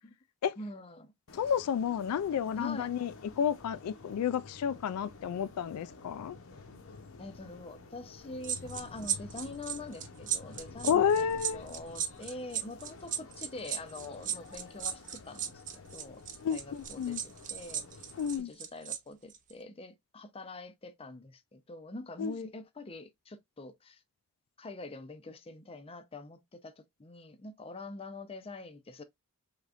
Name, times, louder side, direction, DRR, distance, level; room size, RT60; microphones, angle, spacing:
voice 1, 0.6-1.1 2.6-2.9 6.9-16.2 16.5-17.8 18.4-24.0 24.6-29.0, left 2 dB, 25° left, 0.5 m, -45 dB
voice 2, 1.3-3.1 3.4-6.4 10.8-11.6 16.4-17.2 18.2-18.5 22.2-22.3, left 8 dB, 90° left, 0.3 m, -31 dB
sound 1, 1.3-18.4, left 3 dB, 60° left, 0.8 m, -51 dB
sound 2, 8.4-19.0 19.3-19.5, right 9 dB, 35° right, 0.5 m, -36 dB
3.7 x 3.4 x 2.4 m
head